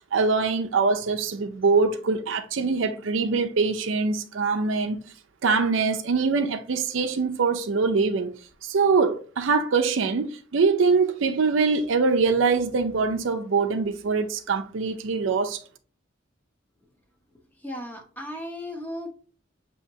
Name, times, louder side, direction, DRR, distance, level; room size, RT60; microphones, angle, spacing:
voice 1, 0.1-5.0 5.4-8.3 8.6-15.6, right 4 dB, 75° right, 0.5 m, -23 dB
voice 2, 17.6-19.1, left 1 dB, 10° left, 0.7 m, -35 dB
6.3 x 2.8 x 2.7 m
head